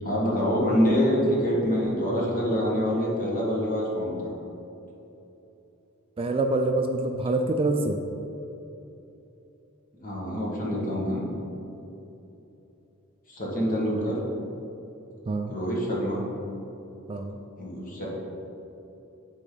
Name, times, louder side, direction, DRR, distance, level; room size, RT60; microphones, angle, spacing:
voice 1, 0.0-4.3 10.0-11.2 13.3-14.2 15.5-16.2 17.6-18.1, equal, 40° left, -4 dB, 1.6 m, -26 dB
voice 2, 6.2-8.0 15.3-15.5 17.1-17.3, right 2 dB, 25° right, 5 dB, 0.3 m, -26 dB
9.8 x 4.1 x 3.9 m, 3.0 s
head